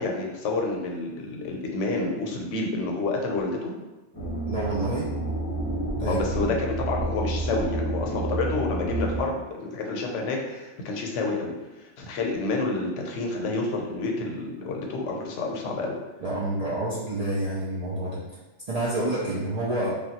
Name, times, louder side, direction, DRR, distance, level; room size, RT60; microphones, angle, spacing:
voice 1, 0.0-3.7 6.0-16.0, left 3 dB, 85° left, 1 dB, 0.9 m, -29 dB
sound 1, 4.1-9.2, right 2 dB, 25° left, 0.7 m, -30 dB
voice 2, 4.4-5.1 6.0-6.5 16.2-18.2 18.7-19.9, right 1 dB, 60° right, -7 dB, 0.4 m, -28 dB
3.2 x 2.3 x 2.8 m, 1.1 s
omnidirectional pair, 1.2 m